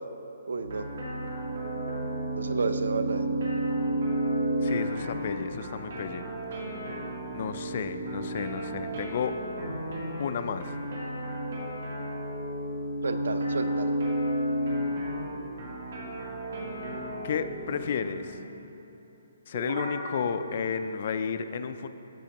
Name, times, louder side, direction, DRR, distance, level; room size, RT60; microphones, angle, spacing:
voice 1, 0.5-0.9 2.4-3.3 13.0-14.0, right 4 dB, 80° right, 10 dB, 0.5 m, -31 dB
sound 1, 0.6-18.4 19.6-20.1 20.4-20.5, right 1 dB, 55° right, 2.1 m, -32 dB
voice 2, 4.6-6.3 7.3-9.4 10.2-10.7 17.2-18.4 19.5-21.9, left 6 dB, 40° left, 10 dB, 0.3 m, -32 dB
15.0 x 5.9 x 2.9 m, 3.0 s
hypercardioid pair, 175°, 0 cm